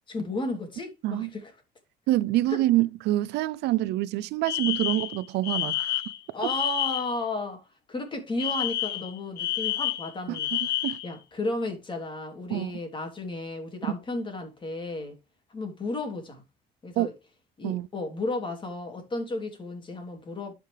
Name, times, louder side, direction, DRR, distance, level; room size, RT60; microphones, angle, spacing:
voice 1, 0.1-1.5 2.5-2.6 6.3-10.6 11.0-15.2 15.5-16.4 16.8-17.1 17.6-20.5, left 2 dB, 30° left, 3.0 m, -33 dB
voice 2, 2.1-6.0 10.3-10.4 10.8-11.0 12.5-12.7 17.0-17.1 17.6-17.9, right 16 dB, 80° right, 0.5 m, -26 dB
Alarm, 4.4-7.2 8.4-11.1, left 13 dB, 70° left, 1.6 m, -29 dB
12.0 x 5.2 x 3.3 m
cardioid pair, 110°, 17 cm